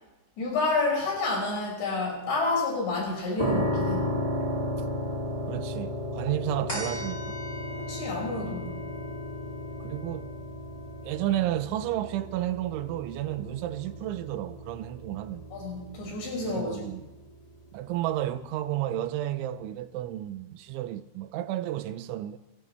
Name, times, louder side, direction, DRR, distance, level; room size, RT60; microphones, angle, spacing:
voice 1, 0.4-4.2 7.8-8.8 15.5-16.9, left 3 dB, 60° left, 8.1 m, -29 dB
sound 1, 3.4-18.2, equal, 35° right, 0.6 m, -35 dB
voice 2, 5.5-7.4 9.8-10.4 11.0-15.4 16.4-17.0 17.7-22.4, right 13 dB, 85° right, 3.1 m, -32 dB
sound 2, 6.7-13.4 13.9-14.0, left 1 dB, 10° left, 4.8 m, -44 dB
29.5 x 14.0 x 3.4 m
omnidirectional pair, 5.5 m